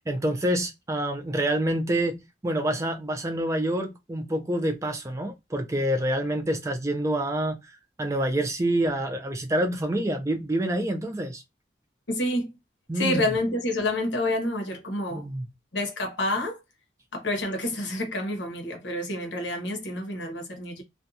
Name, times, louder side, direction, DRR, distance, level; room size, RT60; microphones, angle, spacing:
voice 1, 0.0-7.6 8.0-11.4 12.9-13.2 15.1-15.5, right 1 dB, 15° right, 0.3 m, -27 dB
voice 2, 12.1-12.5 13.0-15.3 15.7-16.6 17.1-20.8, left 1 dB, 90° left, 0.9 m, -28 dB
2.5 x 2.2 x 2.6 m
head